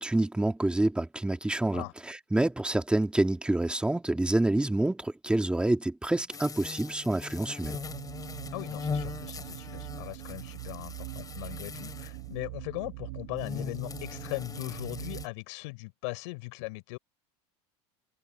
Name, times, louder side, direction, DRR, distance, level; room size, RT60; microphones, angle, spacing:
voice 1, 0.0-7.8, right 2 dB, 5° right, 2.5 m, -27 dB
sound 1, 6.3-12.3 13.4-15.3, left 6 dB, 25° left, 6.0 m, -40 dB
sound 2, 7.6-15.3, right 18 dB, 80° right, 2.2 m, -42 dB
voice 2, 8.5-17.0, left 27 dB, 80° left, 6.4 m, -39 dB
supercardioid pair, 120°, 15 cm